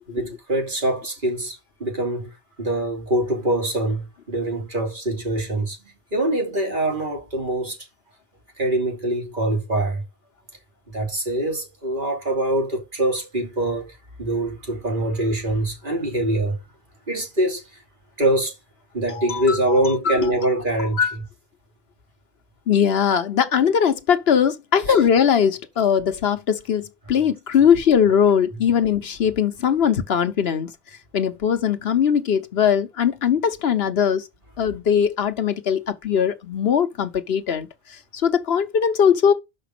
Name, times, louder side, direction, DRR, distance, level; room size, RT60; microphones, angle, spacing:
voice 1, 0.1-5.8 6.1-7.8 8.6-10.0 10.9-16.6 17.1-17.6 18.2-18.5 18.9-21.0 24.9-25.0, right 1 dB, 50° right, 2.9 m, -24 dB
voice 2, 19.1-20.3 21.0-21.1 22.7-30.7 31.1-34.2 34.6-37.7 38.1-39.3, left 8 dB, 75° left, 1.2 m, -20 dB
6.0 x 5.3 x 5.9 m
omnidirectional pair, 1.1 m